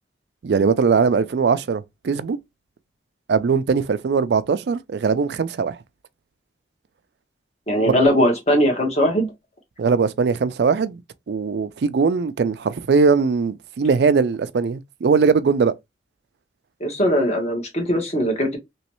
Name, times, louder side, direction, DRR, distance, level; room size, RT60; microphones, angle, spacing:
voice 1, 0.4-2.4 3.3-5.8 7.9-8.0 9.8-11.0 11.3-15.7, right 5 dB, 70° right, 0.4 m, -20 dB
voice 2, 7.7-9.3 16.8-18.6, equal, 40° left, 1.2 m, -20 dB
3.1 x 3.0 x 2.9 m
head